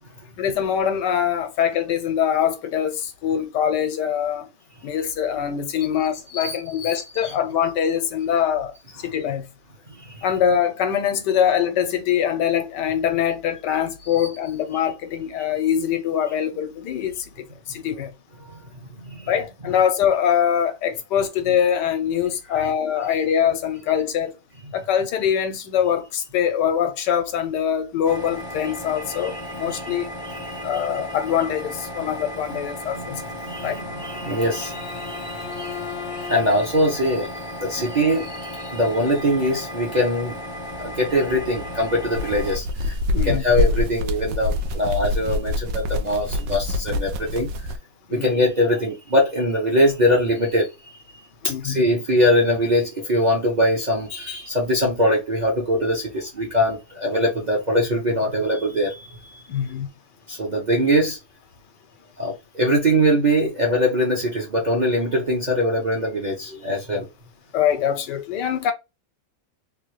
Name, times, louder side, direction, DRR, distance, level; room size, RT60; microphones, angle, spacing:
voice 1, 0.4-4.5 4.8-9.5 10.2-18.1 19.3-24.3 24.7-30.1 30.6-33.2 33.6-33.8 43.1-43.4 48.1-48.3 51.4-51.8 59.5-59.9 67.5-68.7, left 9 dB, 80° left, 1.3 m, -23 dB
voice 2, 6.3-7.3 9.9-10.3 14.1-14.3 18.4-19.3 22.5-22.7 24.6-24.7 29.1-30.9 32.5-32.6 32.9-40.4 40.8-43.0 43.2-47.5 48.1-51.0 51.4-59.4 60.3-61.2 62.2-67.1, equal, 40° right, 0.7 m, -23 dB
sound 1, 28.0-42.6, equal, 40° left, 0.4 m, -35 dB
Bowed string instrument, 33.4-36.8, left 10 dB, 65° left, 0.9 m, -38 dB
sound 2, 40.5-47.8, left 1 dB, 85° right, 1.2 m, -26 dB
3.5 x 2.3 x 3.2 m
omnidirectional pair, 1.9 m